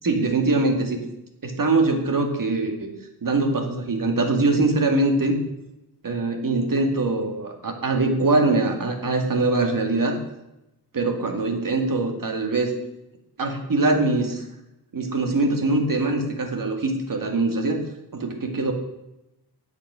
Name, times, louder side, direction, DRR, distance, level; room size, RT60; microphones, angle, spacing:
voice 1, 0.0-1.0 1.4-2.9 3.2-5.4 6.0-10.2 10.9-12.7 13.4-14.4 14.9-17.8 18.1-18.7, right 2 dB, 55° right, 3 dB, 2.1 m, -23 dB
12.0 x 8.4 x 6.2 m, 0.91 s
wide cardioid pair, 165°, 40 cm